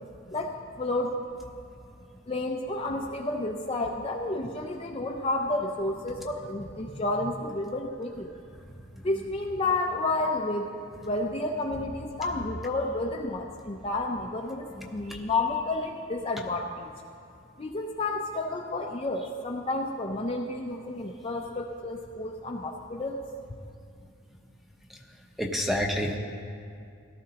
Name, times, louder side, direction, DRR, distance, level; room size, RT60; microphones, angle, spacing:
voice 1, 0.3-1.2 2.3-8.3 9.0-10.7 11.0-14.7 14.9-16.9 17.6-23.2, left 2 dB, 25° left, 1 dB, 0.5 m, -31 dB
voice 2, 14.8-15.2 25.4-26.2, left 1 dB, ahead, 1 dB, 0.8 m, -29 dB
17.5 x 13.0 x 2.9 m, 2.4 s
head